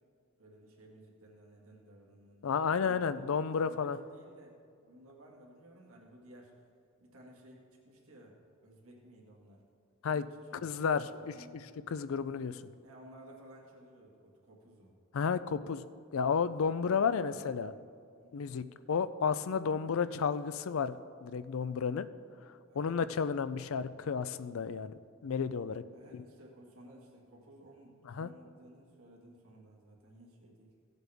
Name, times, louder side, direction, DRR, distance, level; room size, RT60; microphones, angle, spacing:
voice 1, 0.4-6.5 7.0-9.6 10.1-11.6 12.8-15.0 16.4-16.5 17.0-17.8 18.1-18.5 22.7-23.0 25.9-30.7, right 1 dB, 75° right, -2 dB, 2.0 m, -56 dB
voice 2, 2.4-4.0 10.0-10.2 10.6-11.0 11.9-12.7 15.1-15.8 16.1-17.7 18.3-20.9 21.2-22.1 22.7-24.9 25.2-25.8 26.1-26.2 28.1-28.3, left 6 dB, 65° left, 14 dB, 0.4 m, -32 dB
17.0 x 8.0 x 3.5 m, 2.3 s
head